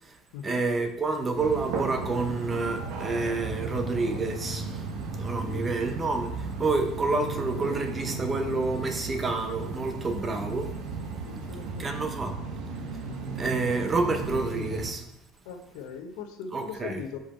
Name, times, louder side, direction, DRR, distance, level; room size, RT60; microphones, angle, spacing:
voice 1, 0.4-4.9 5.2-10.7 11.8-12.3 13.4-15.1 16.5-17.0, right 3 dB, 20° right, 5 dB, 0.7 m, -29 dB
sound 1, 1.3-14.9, right 4 dB, 70° right, 1.0 m, -35 dB
voice 2, 11.2-12.1 15.4-17.2, left 6 dB, 80° left, 6 dB, 0.8 m, -40 dB
5.2 x 5.1 x 4.2 m, 0.86 s
cardioid pair, 145°, 0 cm